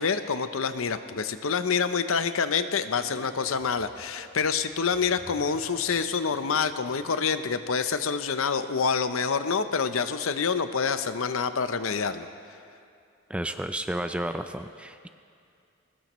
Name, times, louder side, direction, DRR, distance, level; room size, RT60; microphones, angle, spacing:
voice 1, 0.0-12.3, left 5 dB, 65° left, 10 dB, 0.7 m, -27 dB
sound 1, 2.8-7.5, equal, 15° left, 1.4 m, -51 dB
voice 2, 13.3-15.1, right 1 dB, 5° right, 8 dB, 0.4 m, -32 dB
21.0 x 20.0 x 3.1 m, 2.4 s
head